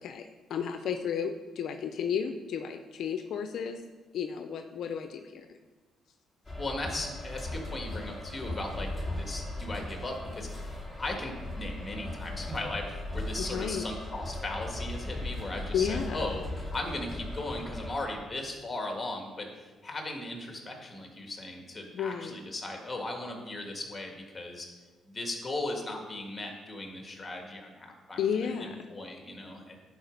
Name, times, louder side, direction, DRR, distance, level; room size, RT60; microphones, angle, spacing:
voice 1, 0.0-3.8 4.1-5.5 13.4-13.9 15.7-16.2 21.9-22.4 28.2-28.9, left 7 dB, 70° left, 7 dB, 0.5 m, -33 dB
sound 1, 6.4-18.0, left 1 dB, 5° left, 2.2 m, -38 dB
voice 2, 6.6-8.9 9.2-16.4 16.7-24.7 25.1-29.8, left 2 dB, 25° left, 2 dB, 1.9 m, -37 dB
10.5 x 4.9 x 5.2 m, 1.3 s
cardioid pair, 90°, 0 cm